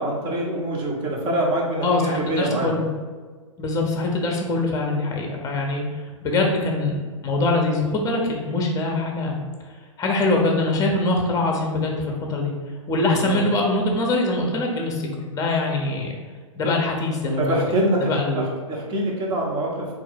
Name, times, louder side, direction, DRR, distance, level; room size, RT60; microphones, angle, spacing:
voice 1, 0.0-2.7 13.1-13.4 17.3-19.9, right 1 dB, 30° right, -2 dB, 1.1 m, -25 dB
voice 2, 1.8-2.8 3.6-7.0 7.2-9.4 10.0-12.5 12.9-16.2 16.6-17.6 18.0-18.4, left 2 dB, 20° left, 1 dB, 0.8 m, -23 dB
3.7 x 2.5 x 4.5 m, 1.5 s
hypercardioid pair, 105°, 16 cm